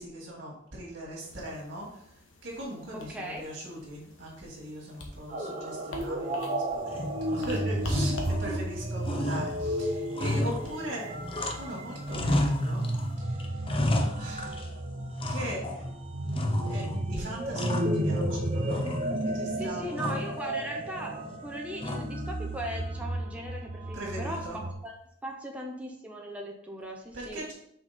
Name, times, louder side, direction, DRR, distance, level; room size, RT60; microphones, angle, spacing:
voice 1, 0.0-2.0 2.4-11.1 11.6-12.9 13.2-13.6 14.2-14.5 15.3-15.9 16.1-18.9 19.3-20.2 23.9-24.6 27.1-27.5, right 1 dB, 65° right, -5 dB, 2.1 m, -40 dB
sound 1, 1.2-13.2, left 1 dB, 90° left, 1.2 m, -46 dB
voice 2, 2.9-3.5 19.6-24.5 24.8-24.9 25.2-27.5, right 1 dB, 5° right, 0 dB, 0.7 m, -38 dB
sound 2, 5.3-24.7, right 1 dB, 35° right, 0.8 m, -33 dB
sound 3, 6.9-7.5 7.8-8.8 9.0-11.8 12.1-13.1 13.4-14.8 15.2-15.9 16.3-17.0 17.3-18.4 18.7-19.4 20.0-20.4 21.8-22.3, left 1 dB, 30° left, 0.6 m, -32 dB
5.8 x 4.4 x 4.3 m, 0.72 s
head